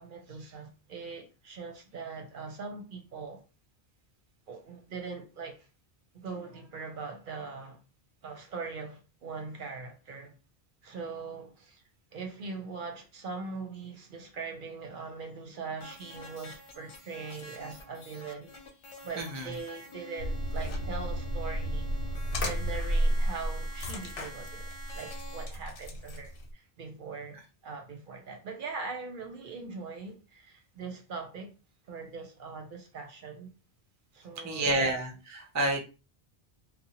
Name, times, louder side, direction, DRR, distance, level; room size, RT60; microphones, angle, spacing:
voice 1, 0.0-3.4 4.5-5.7 6.1-7.8 8.2-10.4 10.8-11.8 12.1-18.5 19.0-21.9 22.4-31.5 31.9-33.5 34.1-34.9, right 4 dB, 60° right, 0.7 m, -41 dB
sound 1, 15.8-25.5, equal, 45° left, 0.4 m, -48 dB
voice 2, 19.2-19.5 34.4-35.8, right 1 dB, 25° right, 0.3 m, -29 dB
sound 2, 20.2-26.5, equal, 90° left, 1.0 m, -32 dB
2.7 x 2.1 x 2.8 m
omnidirectional pair, 1.1 m